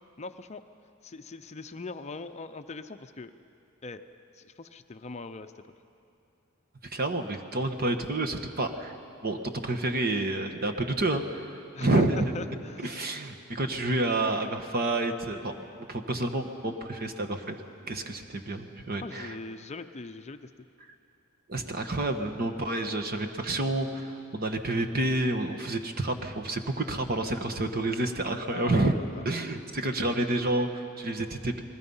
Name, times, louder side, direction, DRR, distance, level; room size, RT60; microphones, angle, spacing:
voice 1, 0.2-0.6 1.0-3.3 3.8-4.0 4.3-5.7 11.7-12.0 12.3-13.1 19.0-20.5 28.5-29.2, left 3 dB, 30° left, 8 dB, 0.6 m, -41 dB
voice 2, 6.8-9.0 9.2-12.3 12.8-17.6 17.9-19.4 21.5-29.0 29.2-31.6, right 2 dB, 45° right, 6 dB, 1.3 m, -29 dB
28.5 x 20.5 x 5.6 m, 2.7 s
head